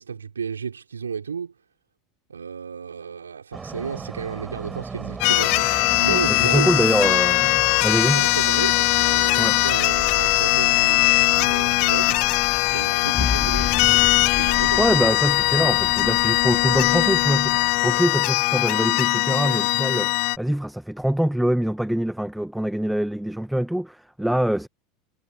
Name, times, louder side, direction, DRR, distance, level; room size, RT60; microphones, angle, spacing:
voice 1, 0.0-1.5 2.3-6.7 8.0-12.2 12.7-13.8 14.3-14.8, right 6 dB, 80° right, 4.8 m, -32 dB
sound 1, 3.5-18.2, right 4 dB, 20° right, 4.8 m, -39 dB
sound 2, 5.2-20.4, left 30 dB, 50° left, 0.8 m, -20 dB
voice 2, 6.1-8.3 9.4-9.6 14.8-24.7, right 1 dB, ahead, 1.8 m, -24 dB
sound 3, 9.8-17.8, left 5 dB, 20° left, 3.0 m, -34 dB
figure-of-eight pair, 80°, 0 cm